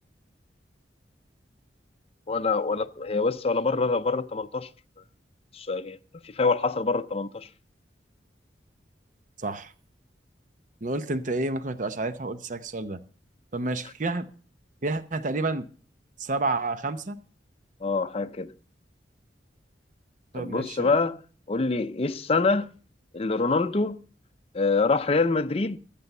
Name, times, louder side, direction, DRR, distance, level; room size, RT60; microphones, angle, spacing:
voice 1, 2.3-4.7 5.5-6.0 6.2-7.5 17.8-18.5 20.3-21.2 21.5-22.7 23.1-24.0 24.5-25.8, left 3 dB, 35° left, 0.6 m, -25 dB
voice 2, 9.4-9.7 10.8-13.0 13.5-14.3 14.8-15.7 16.2-17.2 20.3-20.9, right 2 dB, 45° right, 0.7 m, -29 dB
14.0 x 8.4 x 5.4 m
head